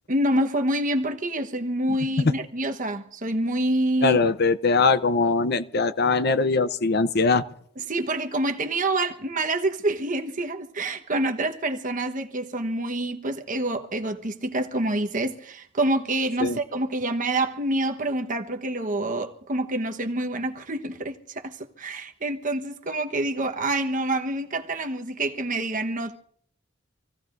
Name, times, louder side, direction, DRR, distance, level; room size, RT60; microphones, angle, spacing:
voice 1, 0.1-4.2 7.9-26.2, right 1 dB, 40° right, 1.2 m, -27 dB
voice 2, 4.0-7.4 16.4-16.6, left 4 dB, 55° left, 0.7 m, -21 dB
27.0 x 15.5 x 2.6 m
head